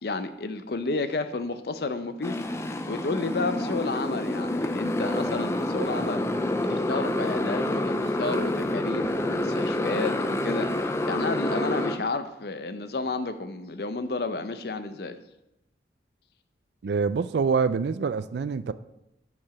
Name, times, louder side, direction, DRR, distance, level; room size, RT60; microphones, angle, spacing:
voice 1, 0.0-2.4 2.9-6.3 6.6-15.2, left 3 dB, 60° left, 10 dB, 0.6 m, -31 dB
Motorcycle, 2.2-12.0, left 1 dB, 15° left, 0.4 m, -28 dB
voice 2, 16.8-18.7, right 5 dB, 70° right, 14 dB, 0.4 m, -25 dB
7.3 x 4.8 x 5.7 m, 0.87 s
head